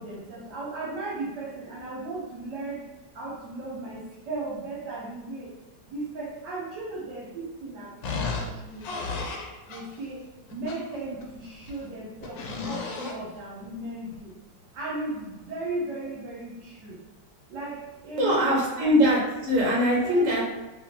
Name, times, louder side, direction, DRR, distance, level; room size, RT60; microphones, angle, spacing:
voice 1, 0.0-2.9 3.1-5.5 5.9-9.3 9.7-14.3 14.7-17.0 17.5-18.9 20.0-20.3, right 2 dB, 75° right, -5 dB, 1.4 m, -36 dB
sound 1, 8.0-10.0 10.5-11.8 12.2-13.3 14.1-14.2, left 4 dB, 80° left, 1.2 m, -34 dB
voice 2, 18.2-20.4, equal, 50° right, -5 dB, 1.3 m, -22 dB
3.4 x 3.2 x 2.8 m, 1.1 s
omnidirectional pair, 2.0 m